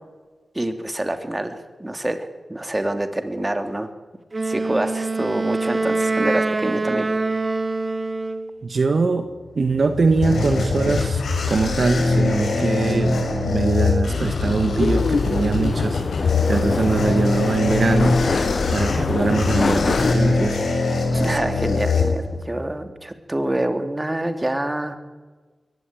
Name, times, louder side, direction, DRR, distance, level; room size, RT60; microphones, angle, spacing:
voice 1, 0.5-3.9 4.4-7.1 21.1-25.0, right 1 dB, 20° right, 7 dB, 3.1 m, -26 dB
Wind instrument woodwind instrument, 4.3-8.5, right 3 dB, 40° right, 1.9 m, -24 dB
voice 2, 8.6-11.2 11.5-18.2 18.7-20.6, right 3 dB, 60° right, 8 dB, 1.8 m, -22 dB
sound 1, 9.6-22.6, left 3 dB, 85° left, 6.7 m, -22 dB
sound 2, 14.8-20.1, left 4 dB, 65° left, 1.1 m, -25 dB
23.0 x 18.0 x 9.2 m, 1.3 s
cardioid pair, 55°, 0 cm